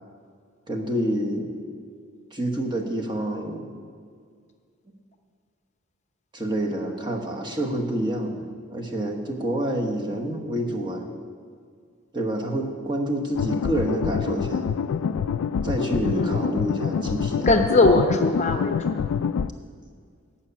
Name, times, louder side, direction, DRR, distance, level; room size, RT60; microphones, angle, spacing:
voice 1, 0.7-1.6 2.3-3.7 6.3-11.0 12.1-14.7 15.6-17.5, right 1 dB, 20° right, 1 dB, 1.1 m, -28 dB
sound 1, 13.3-19.5, left 6 dB, 75° left, 0.3 m, -26 dB
voice 2, 16.1-16.8 17.5-18.9, left 2 dB, 30° left, 5 dB, 0.7 m, -21 dB
12.0 x 5.8 x 8.5 m, 2.1 s
head